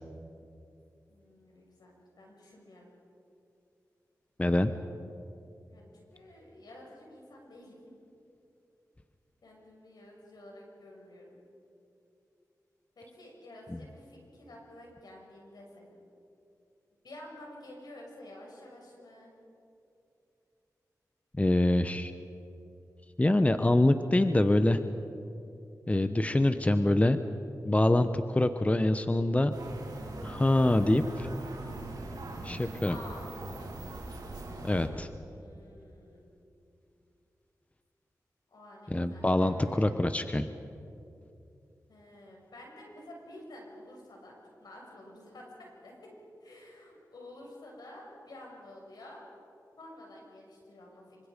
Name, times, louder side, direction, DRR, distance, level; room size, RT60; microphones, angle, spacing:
voice 1, 1.1-2.9 5.7-7.8 9.4-11.4 13.0-16.0 17.0-19.3 32.8-33.9 35.3-36.3 38.5-39.9 41.9-46.1 46.4-49.2 49.8-51.3, left 1 dB, 80° left, -1 dB, 6.6 m, -50 dB
voice 2, 4.4-4.7 21.4-22.1 23.2-24.8 25.9-27.2 27.6-29.5 30.2-31.3 32.4-32.9 34.6-35.1 38.9-40.5, left 1 dB, 20° left, 10 dB, 0.9 m, -25 dB
sound 1, 29.5-34.9, right 2 dB, 85° right, 4.4 m, -41 dB
26.0 x 24.5 x 5.2 m, 2.7 s
cardioid pair, 60°, 7 cm